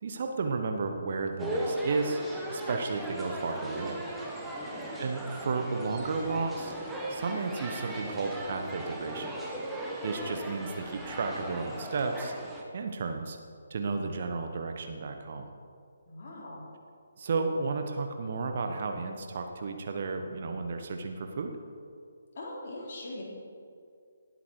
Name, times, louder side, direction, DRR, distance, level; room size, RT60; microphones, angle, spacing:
voice 1, 0.0-2.2 2.5-4.0 5.0-6.7 7.1-9.4 10.0-12.3 12.7-13.4 13.7-15.5 17.2-21.5, right 4 dB, 45° right, 5 dB, 1.2 m, -33 dB
sound 1, 1.4-12.6, right 1 dB, 5° right, 1.4 m, -37 dB
voice 2, 4.7-5.1 16.1-16.7 22.4-23.2, left 2 dB, 45° left, -4 dB, 3.9 m, -42 dB
19.0 x 8.4 x 4.7 m, 2.3 s
figure-of-eight pair, 140°, 0 cm